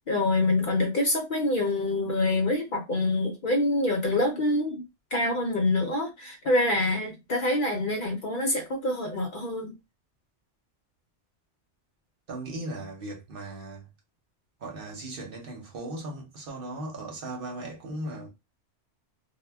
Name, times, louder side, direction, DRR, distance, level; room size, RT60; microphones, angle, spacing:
voice 1, 0.1-4.8 5.1-9.7, left 2 dB, 55° left, 0.7 m, -26 dB
voice 2, 12.3-13.9 14.6-18.3, right 2 dB, 55° right, 0.9 m, -37 dB
2.1 x 2.1 x 3.3 m
omnidirectional pair, 1.2 m